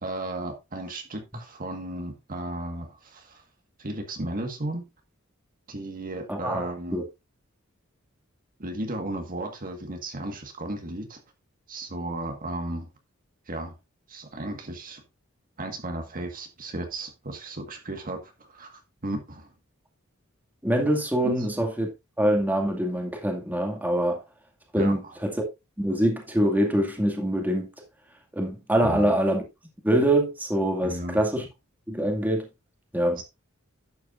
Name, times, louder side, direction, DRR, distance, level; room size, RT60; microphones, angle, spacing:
voice 1, 0.0-3.4 3.8-4.9 5.7-7.0 8.6-11.2 11.7-12.9 13.5-13.7 14.1-15.0 15.6-19.5 21.2-21.5 24.8-25.1 28.8-29.1 30.8-31.2 33.1-33.2, right 1 dB, 40° right, 1.7 m, -34 dB
voice 2, 6.3-7.0 20.6-21.9 22.2-24.2 24.7-25.4 25.8-27.7 28.3-29.4 29.8-31.5 31.9-32.5 32.9-33.2, right 1 dB, 10° right, 2.2 m, -24 dB
11.5 x 8.6 x 2.6 m
head